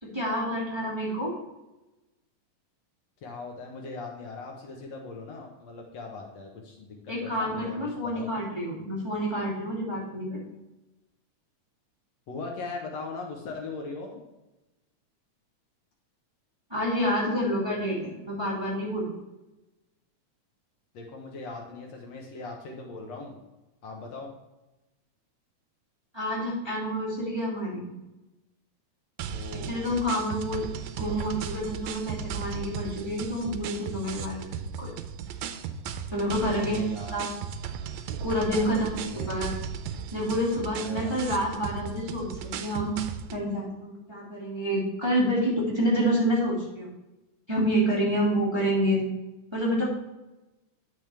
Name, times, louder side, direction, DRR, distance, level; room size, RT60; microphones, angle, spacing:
voice 1, 0.0-1.3 7.1-10.4 16.7-19.1 26.1-27.9 29.7-30.7 31.0-34.9 36.1-36.8 37.1-37.3 38.2-38.9 39.3-39.5 40.1-42.9 43.3-46.9 47.5-49.0 49.5-49.9, equal, 10° right, -6 dB, 2.2 m, -28 dB
voice 2, 3.2-8.3 12.3-14.2 20.9-23.4 23.8-24.3 29.3-30.1 36.5-37.2 38.5-39.3 40.7-41.1, left 3 dB, 65° left, 1 dB, 2.3 m, -40 dB
sound 1, 29.2-43.4, right 7 dB, 80° right, 1.8 m, -36 dB
9.8 x 7.1 x 3.4 m, 1.0 s
omnidirectional pair, 3.4 m